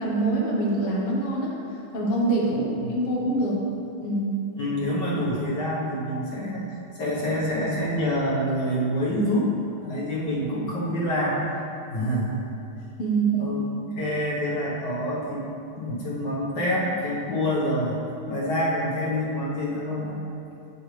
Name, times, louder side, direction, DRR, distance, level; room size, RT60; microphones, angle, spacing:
voice 1, 0.0-1.5 1.9-3.6 4.0-4.3 6.4-6.6 12.0-12.1 13.0-13.3, right 2 dB, 90° left, -3 dB, 2.3 m, -25 dB
voice 2, 2.4-3.0 4.6-9.5 9.8-11.4 11.9-12.4 13.3-13.6 13.9-15.4 15.8-18.0 18.3-20.2, equal, 55° left, -6 dB, 1.9 m, -27 dB
8.1 x 7.8 x 3.3 m, 2.8 s
omnidirectional pair, 2.4 m